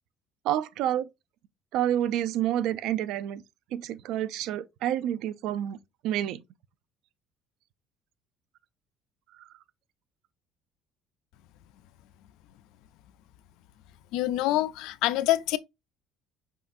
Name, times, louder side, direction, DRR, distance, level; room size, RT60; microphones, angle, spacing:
voice 1, 0.4-1.1 1.7-3.4 3.7-5.8 6.0-6.4 9.4-9.5, right 11 dB, 75° right, 0.4 m, -28 dB
voice 2, 14.1-15.6, left 15 dB, 80° left, 0.4 m, -26 dB
5.5 x 3.6 x 2.6 m
cardioid pair, 130°, 0 cm